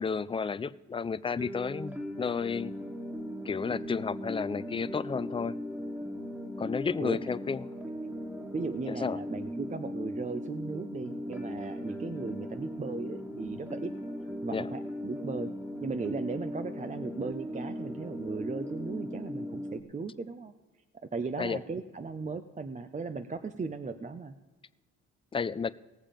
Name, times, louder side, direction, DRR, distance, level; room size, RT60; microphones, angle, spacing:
voice 1, 0.0-2.7 3.4-5.5 6.6-7.6 8.9-9.2 14.5-14.7 21.4-21.6 25.3-25.7, left 5 dB, 20° left, 16 dB, 0.4 m, -32 dB
sound 1, 1.4-19.8, left 1 dB, 5° right, 1.5 m, -38 dB
voice 2, 7.0-7.3 8.1-8.2 8.5-13.9 14.4-15.5 15.8-20.5 21.0-24.3, right 4 dB, 25° right, 9 dB, 0.6 m, -37 dB
18.5 x 7.3 x 5.1 m, 1.2 s
cardioid pair, 90°, 30 cm